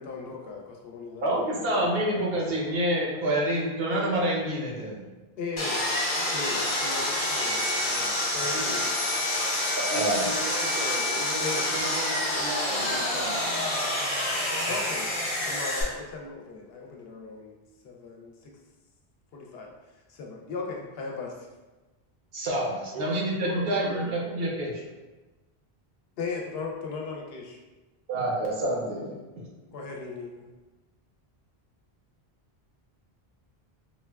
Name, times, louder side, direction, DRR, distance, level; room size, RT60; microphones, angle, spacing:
voice 1, 0.0-1.5 1.8-2.5 5.4-5.8 6.1-8.8 11.4-11.7 14.7-17.6 17.8-18.5 19.3-19.7 20.1-21.5 26.2-27.6 29.7-30.5, left 4 dB, 75° left, 0 dB, 0.8 m, -38 dB
voice 2, 1.2-5.0 9.8-10.3 22.3-24.8 28.1-29.5, right 1 dB, 75° right, -2 dB, 0.9 m, -27 dB
Sawing, 5.6-15.8, left 1 dB, 40° left, 0.6 m, -27 dB
voice 3, 9.9-13.5 22.9-24.2, right 3 dB, 50° right, -3 dB, 0.6 m, -37 dB
3.9 x 2.1 x 2.2 m, 1.2 s
omnidirectional pair, 1.0 m